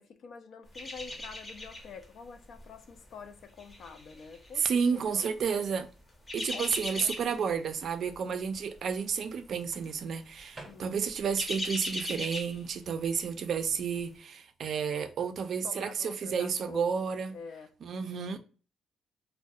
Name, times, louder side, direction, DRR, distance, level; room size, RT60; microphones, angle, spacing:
voice 1, 0.0-5.4 6.5-7.6 10.6-11.0 15.6-17.7 18.0-18.2, left 6 dB, 65° left, 0.4 m, -47 dB
sound 1, 0.7-2.0 2.4-2.6 3.3-5.0 6.0-7.5 7.8-8.1 8.4-8.6 9.5-9.9 10.2-10.4 10.9-13.2 13.5-13.6, left 1 dB, 25° left, 0.6 m, -39 dB
Microwave oven, 1.0-1.7 3.7-3.9 9.7-11.3, right 2 dB, 25° right, 0.6 m, -53 dB
voice 2, 4.6-5.9 6.3-17.3 17.8-18.4, right 6 dB, 60° right, 0.3 m, -31 dB
2.3 x 2.1 x 2.6 m
cardioid pair, 90°, 0 cm